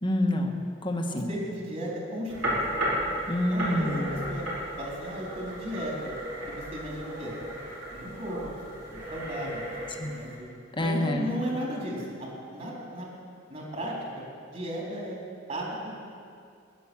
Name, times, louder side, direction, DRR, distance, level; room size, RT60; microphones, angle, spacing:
voice 1, 0.0-1.3 3.3-4.2 10.0-10.1 10.8-11.3, left 1 dB, 25° left, 3 dB, 1.4 m, -27 dB
voice 2, 1.1-2.6 3.5-4.5 4.8-6.1 6.5-7.3 7.9-8.4 8.9-9.6 10.0-10.3 10.8-13.1 13.5-13.9 14.5-15.2 15.5-15.9, equal, 40° right, -3 dB, 4.0 m, -35 dB
sound 1, 2.3-10.4, equal, 75° right, 4.6 m, -34 dB
17.0 x 10.5 x 7.2 m, 2.3 s
head